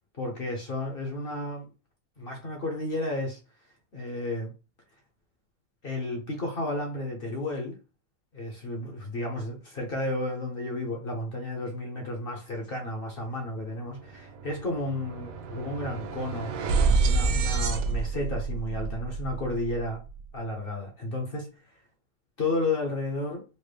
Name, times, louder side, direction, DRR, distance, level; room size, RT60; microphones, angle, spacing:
voice 1, 0.2-1.7 2.2-3.4 3.9-4.5 5.8-7.8 8.3-16.5 17.0-20.0 20.3-21.5 22.4-23.4, left 2 dB, 50° left, 0.7 m, -32 dB
sound 1, 13.5-13.7 14.0-20.2, right 4 dB, 70° right, 0.8 m, -28 dB
4.2 x 2.0 x 3.3 m
omnidirectional pair, 1.9 m